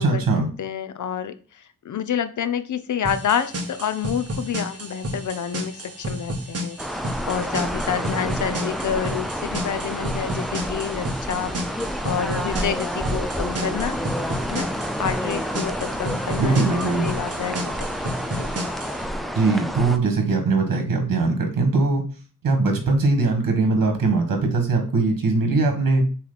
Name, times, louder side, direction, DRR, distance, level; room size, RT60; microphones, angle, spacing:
voice 1, 0.0-0.5 16.4-17.1 19.3-22.0 22.4-26.1, right 3 dB, 85° right, 4 dB, 1.8 m, -21 dB
voice 2, 0.6-6.8 7.2-11.5 12.0-14.0 14.5-14.7 15.0-17.8 18.0-18.5, left 8 dB, 65° left, 12 dB, 0.6 m, -28 dB
sound 1, 3.0-19.0, right 1 dB, 45° right, 1.5 m, -32 dB
sound 2, 6.8-20.0, equal, ahead, 0.5 m, -29 dB
7.5 x 3.3 x 4.0 m, 0.38 s
wide cardioid pair, 155°, 33 cm